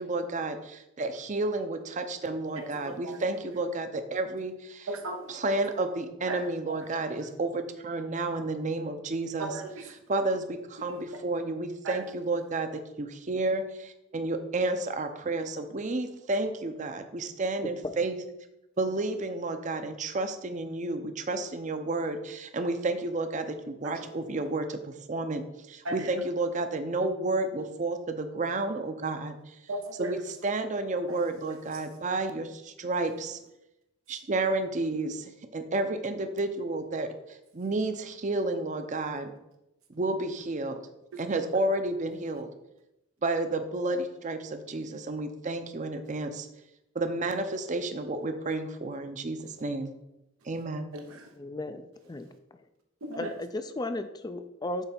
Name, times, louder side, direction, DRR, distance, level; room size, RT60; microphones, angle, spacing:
voice 1, 0.0-4.9 5.3-9.5 10.1-18.2 18.8-29.4 30.0-33.4 34.1-39.3 39.9-40.8 41.2-42.5 43.2-46.5 46.9-49.9 50.5-50.9, right 2 dB, 35° right, 8 dB, 0.6 m, -31 dB
voice 2, 2.6-3.3 4.9-5.3 6.3-6.9 9.4-9.9 10.8-11.0 11.8-12.1 23.8-24.1 25.8-26.1 29.7-30.2 31.1-31.2 31.5-31.9 41.1-41.2 50.9-51.3 53.0-53.3, right 2 dB, 90° right, 3 dB, 0.8 m, -37 dB
voice 3, 17.6-18.0 51.4-52.3 53.2-54.8, left 2 dB, 20° left, 9 dB, 0.4 m, -35 dB
8.1 x 3.3 x 5.8 m, 0.90 s
head